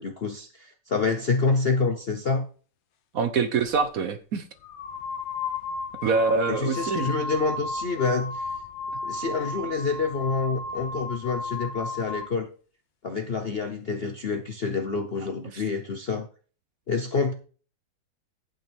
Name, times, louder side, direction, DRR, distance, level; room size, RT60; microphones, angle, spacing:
voice 1, 0.0-2.4 6.5-8.5 9.0-12.5 13.0-16.3 16.9-17.3, left 4 dB, 50° left, 0.7 m, -27 dB
voice 2, 3.1-4.4 6.0-7.1 15.5-15.6, right 4 dB, 55° right, 1.1 m, -25 dB
sound 1, 3.7-3.8 4.6-12.3, left 3 dB, 85° left, 1.8 m, -34 dB
9.8 x 8.8 x 3.5 m
omnidirectional pair, 2.0 m